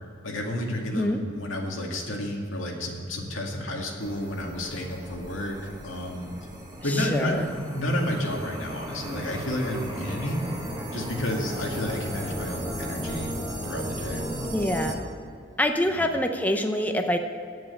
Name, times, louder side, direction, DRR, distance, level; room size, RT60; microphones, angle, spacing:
voice 1, 0.2-6.3 6.8-10.5 10.9-13.3 13.6-14.2 15.9-16.0, left 1 dB, 90° left, 0 dB, 2.1 m, -31 dB
sound 1, 4.0-15.0, equal, 20° right, 1.5 m, -35 dB
voice 2, 6.9-7.5 14.5-15.0 15.6-17.2, left 1 dB, 10° left, 5 dB, 0.6 m, -25 dB
9.1 x 7.6 x 8.9 m, 2.4 s
head